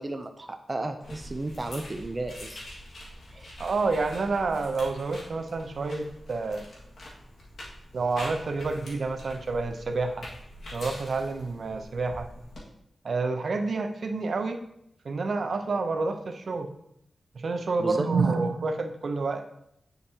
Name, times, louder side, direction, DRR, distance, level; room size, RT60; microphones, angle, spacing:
voice 1, 0.0-2.6 3.3-3.5 17.8-18.1, right 2 dB, 30° right, 6 dB, 0.4 m, -33 dB
sound 1, 1.0-12.6, left 1 dB, 85° left, 1.8 m, -44 dB
voice 2, 3.6-6.7 7.9-10.3 10.7-12.3 13.0-14.6 15.0-16.7 17.3-19.5, right 3 dB, 65° right, 7 dB, 0.7 m, -28 dB
9.6 x 5.2 x 2.8 m, 0.75 s
wide cardioid pair, 110°, 0 cm